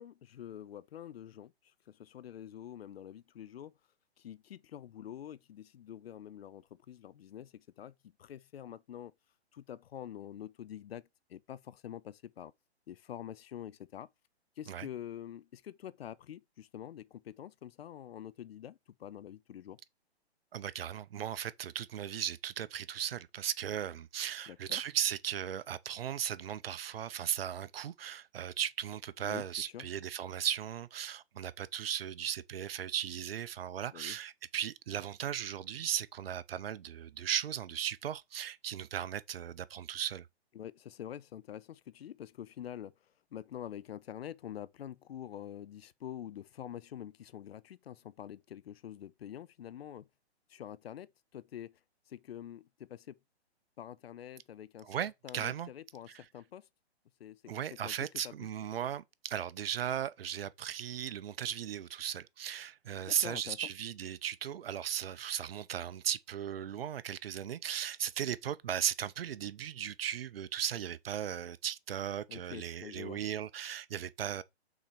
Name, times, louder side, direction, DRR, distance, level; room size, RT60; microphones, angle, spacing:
voice 1, 0.0-1.5 1.9-3.7 4.2-7.9 8.2-9.1 9.5-12.5 12.9-14.1 14.6-19.8 24.5-24.8 29.2-29.4 29.7-29.9 33.9-34.2 40.5-42.9 43.3-50.1 50.5-51.8 52.1-53.2 53.8-54.9 55.2-56.7 57.2-57.9 58.2-58.5 63.1-63.6 72.3-73.2, left 10 dB, 65° left, 0.6 m, -46 dB
voice 2, 20.5-40.3 54.8-55.7 56.1-56.2 57.5-74.4, right 9 dB, 60° right, 0.8 m, -37 dB
5.9 x 4.1 x 5.1 m
hypercardioid pair, 140°, 33 cm